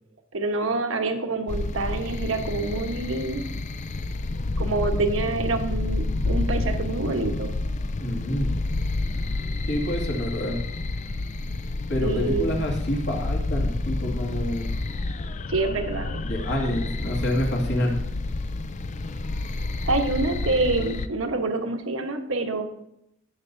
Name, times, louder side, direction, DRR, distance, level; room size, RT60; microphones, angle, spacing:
voice 1, 0.3-3.4 4.6-7.5 12.0-12.5 15.5-16.2 19.8-22.6, right 3 dB, 80° right, 5 dB, 1.2 m, -26 dB
sound 1, 1.5-21.1, left 2 dB, 35° left, 0.5 m, -29 dB
voice 2, 8.0-8.5 9.7-10.6 11.9-14.8 16.2-17.9, equal, 60° left, -1 dB, 2.3 m, -27 dB
17.5 x 6.8 x 2.7 m, 0.80 s
head